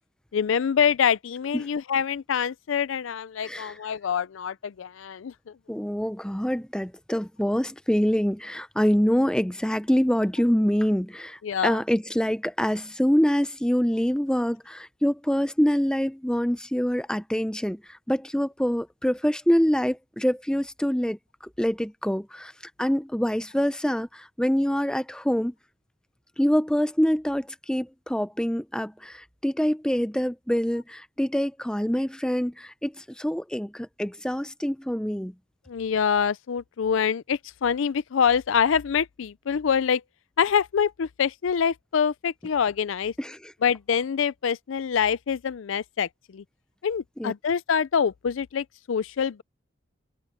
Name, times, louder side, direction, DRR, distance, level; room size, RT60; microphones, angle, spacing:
voice 1, 0.3-5.3 11.4-11.8 35.7-40.0 40.4-43.1 43.6-46.4 46.8-49.4, left 7 dB, 80° left, 0.4 m, -25 dB
voice 2, 3.4-3.8 5.7-22.5 22.8-25.5 26.4-35.3 43.2-43.5 47.2-47.3, equal, 5° left, 0.6 m, -25 dB
open air
head